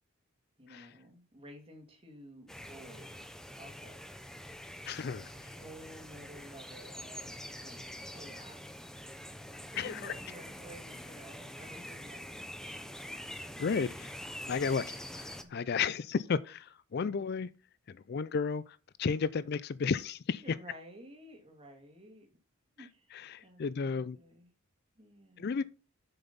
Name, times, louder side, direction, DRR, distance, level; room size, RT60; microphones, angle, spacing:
voice 1, 0.6-4.1 5.3-8.6 9.7-12.3 20.4-22.3 22.8-24.5 25.0-25.6, right 1 dB, 25° right, 2.5 m, -53 dB
sound 1, 2.5-15.4, equal, 5° left, 0.7 m, -45 dB
voice 2, 4.9-5.3 9.7-10.1 13.4-14.2 14.5-17.5 17.9-20.4 23.1-24.2 25.4-25.6, left 5 dB, 45° left, 0.4 m, -33 dB
7.9 x 6.9 x 4.0 m
head